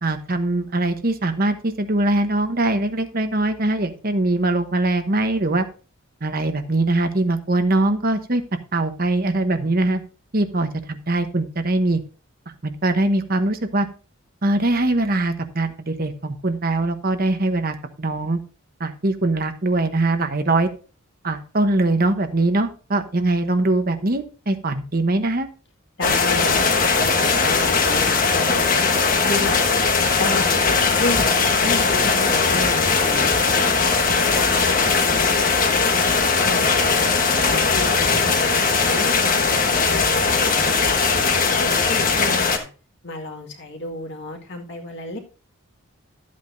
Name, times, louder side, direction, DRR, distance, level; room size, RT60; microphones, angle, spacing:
voice 1, 0.0-5.7 6.2-8.4 8.7-10.0 10.3-12.0 12.6-13.9 14.4-18.4 18.8-20.7 21.2-25.5, right 2 dB, 40° right, 8 dB, 1.0 m, -22 dB
voice 2, 26.0-29.8 30.2-30.6 31.0-31.3 31.6-33.9 34.3-36.0 36.4-42.7 43.0-45.2, left 1 dB, 55° left, 2 dB, 2.0 m, -32 dB
sound 1, 26.0-42.6, left 4 dB, 40° left, 1.2 m, -19 dB
12.5 x 8.5 x 2.7 m, 0.34 s
head